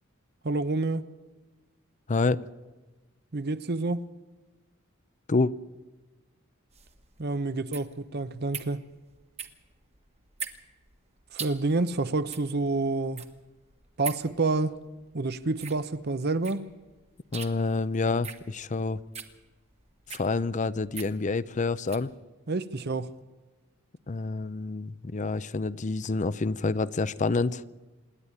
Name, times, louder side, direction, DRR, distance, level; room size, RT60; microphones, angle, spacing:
voice 1, 0.4-1.0 3.3-4.0 7.2-8.8 11.3-13.3 14.0-14.8 15.1-16.7 22.5-23.1, right 3 dB, 50° right, 0.8 m, -28 dB
voice 2, 2.1-2.4 5.3-5.5 17.3-19.0 20.1-22.1 24.1-27.6, left 3 dB, 35° left, 0.5 m, -28 dB
sound 1, 6.7-22.1, right 7 dB, 30° right, 1.5 m, -43 dB
26.5 x 10.5 x 9.8 m
head